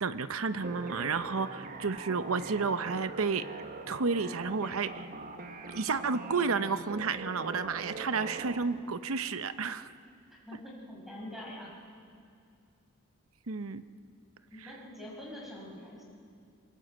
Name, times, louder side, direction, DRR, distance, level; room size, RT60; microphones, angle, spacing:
voice 1, 0.0-3.5 3.9-5.1 5.7-9.9 13.5-13.8, right 4 dB, 75° right, 12 dB, 0.8 m, -31 dB
sound 1, 0.6-8.6, right 3 dB, 40° right, 1.3 m, -43 dB
voice 2, 10.5-11.7 14.5-16.1, left 1 dB, ahead, -3 dB, 5.9 m, -44 dB
23.0 x 19.5 x 8.0 m, 2.4 s
head